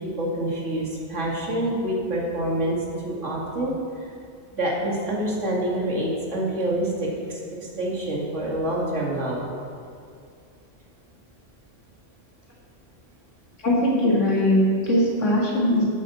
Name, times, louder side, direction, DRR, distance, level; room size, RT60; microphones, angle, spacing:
voice 1, 0.0-3.7 4.5-7.4 7.8-9.4, right 1 dB, 85° right, -3 dB, 2.4 m, -26 dB
voice 2, 13.6-15.8, left 1 dB, 85° left, -4 dB, 2.4 m, -20 dB
11.5 x 9.3 x 4.2 m, 2.4 s
omnidirectional pair, 1.2 m